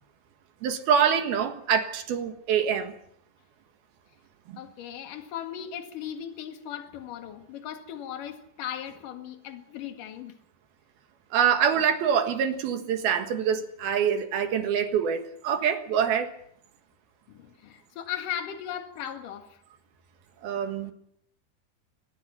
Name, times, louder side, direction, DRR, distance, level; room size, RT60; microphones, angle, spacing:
voice 1, 0.6-2.9 4.5-4.6 11.3-16.3 20.4-20.9, right 8 dB, 65° right, 3.2 m, -25 dB
voice 2, 4.6-10.4 17.3-19.6, left 10 dB, 55° left, 3.1 m, -37 dB
23.5 x 19.5 x 5.8 m
omnidirectional pair, 5.2 m